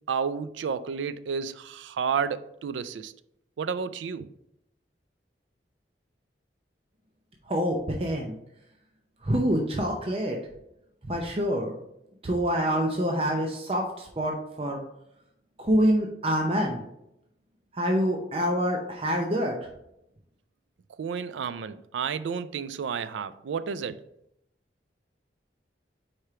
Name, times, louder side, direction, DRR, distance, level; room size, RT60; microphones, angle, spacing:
voice 1, 0.1-3.1 3.6-4.3 21.0-24.0, right 6 dB, 90° right, 0.4 m, -31 dB
voice 2, 7.5-8.4 9.2-10.4 11.0-11.7 12.2-14.8 15.6-16.8 17.7-19.6, equal, 30° right, 0.6 m, -26 dB
4.9 x 4.3 x 4.7 m
head